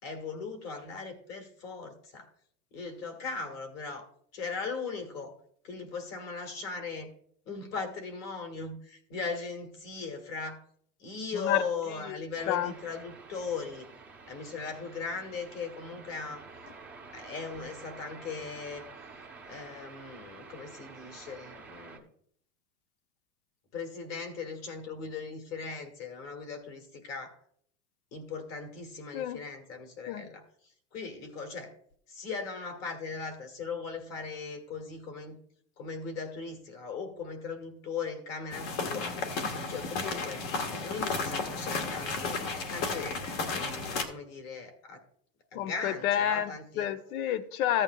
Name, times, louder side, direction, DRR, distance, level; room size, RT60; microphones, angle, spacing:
voice 1, 0.0-2.3 2.7-5.3 5.6-7.1 7.5-10.6 11.0-13.9 14.2-16.4 17.1-18.9 19.4-22.1 23.7-27.4 28.1-30.4 30.9-31.7 32.1-35.4 35.8-39.2 39.7-40.5 40.8-42.4 42.7-45.0 45.5-46.9, left 4 dB, 35° left, 6 dB, 1.7 m, -39 dB
voice 2, 11.3-11.6 12.5-12.7 29.1-29.4 30.1-30.2 45.5-47.8, left 10 dB, 70° left, 11 dB, 0.8 m, -29 dB
sound 1, 12.4-22.0, right 4 dB, 5° right, 0.7 m, -49 dB
sound 2, 38.5-44.0, left 4 dB, 55° left, 1.7 m, -33 dB
14.5 x 8.8 x 2.3 m, 0.65 s
supercardioid pair, 150°, 45 cm